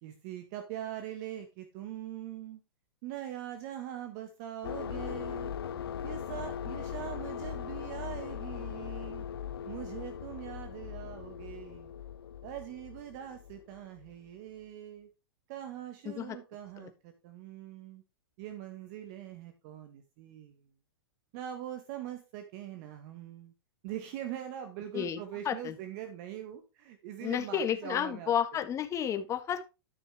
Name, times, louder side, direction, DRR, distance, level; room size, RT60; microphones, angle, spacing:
voice 1, 0.0-2.6 3.0-5.5 6.0-9.2 9.6-11.9 12.4-15.1 15.5-18.0 18.4-20.7 21.3-23.5 23.8-28.3, right 11 dB, 50° right, 7 dB, 1.5 m, -42 dB
sound 1, 4.6-14.1, left 9 dB, 80° left, 0.7 m, -40 dB
voice 2, 16.0-16.4 16.8-16.9 24.9-25.7 27.2-29.7, left 9 dB, 25° left, 8 dB, 1.5 m, -32 dB
12.5 x 6.5 x 3.5 m, 0.28 s
hypercardioid pair, 130°, 12 cm